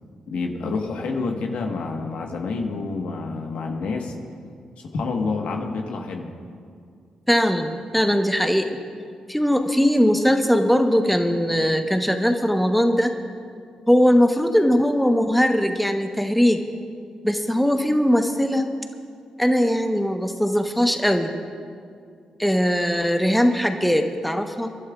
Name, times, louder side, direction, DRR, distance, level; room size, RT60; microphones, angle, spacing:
voice 1, 0.3-4.1 4.8-6.3, left 4 dB, 75° left, 2 dB, 1.4 m, -28 dB
voice 2, 7.3-8.8 9.3-13.1 13.9-16.6 17.2-18.7 19.4-21.3 22.4-24.8, equal, ahead, 5 dB, 1.1 m, -20 dB
28.5 x 11.5 x 2.5 m, 2.3 s
supercardioid pair, 45°, 2 cm